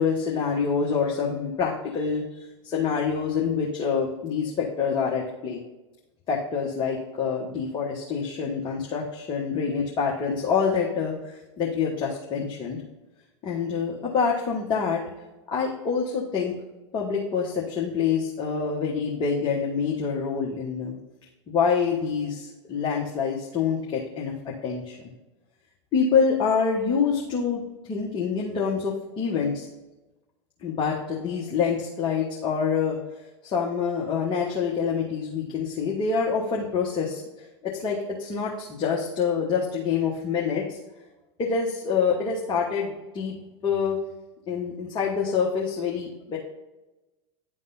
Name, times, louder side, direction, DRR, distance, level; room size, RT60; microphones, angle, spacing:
voice 1, 0.0-5.6 6.3-12.8 13.4-15.0 15.5-16.5 16.9-21.0 21.5-25.0 25.9-29.7 30.6-33.0 33.4-37.2 37.6-40.8 41.4-43.4 43.6-44.0 44.5-46.4, left 6 dB, 30° left, -2 dB, 1.3 m, -26 dB
11.0 x 3.6 x 4.0 m, 1.1 s
figure-of-eight pair, 85°, 15 cm